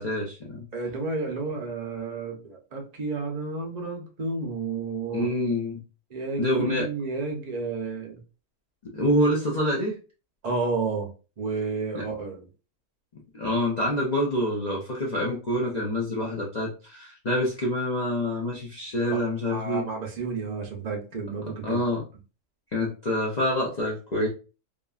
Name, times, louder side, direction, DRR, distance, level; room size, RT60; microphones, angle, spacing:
voice 1, 0.0-0.6 5.1-5.8 6.4-6.9 8.9-10.0 11.9-12.0 13.3-19.8 21.6-22.0 22.7-24.3, left 1 dB, 70° left, -5 dB, 0.4 m, -26 dB
voice 2, 0.7-5.3 6.1-8.2 10.4-11.1 11.4-12.5 19.5-21.8, right 4 dB, 60° right, 1 dB, 0.4 m, -31 dB
2.9 x 2.5 x 2.3 m, 0.33 s
omnidirectional pair, 1.6 m